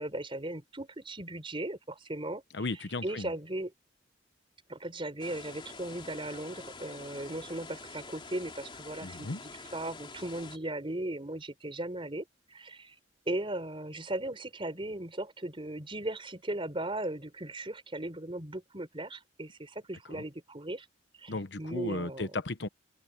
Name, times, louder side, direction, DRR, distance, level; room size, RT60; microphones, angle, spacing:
voice 1, 0.0-2.4 3.0-3.7 4.7-12.9 13.3-20.9 21.2-22.3, right 1 dB, 30° right, 4.4 m, -37 dB
voice 2, 2.5-3.3 9.0-9.4 20.1-20.2 21.3-22.7, left 3 dB, 65° left, 1.0 m, -35 dB
sound 1, 5.2-10.6, left 4 dB, 30° left, 3.2 m, -47 dB
open air
head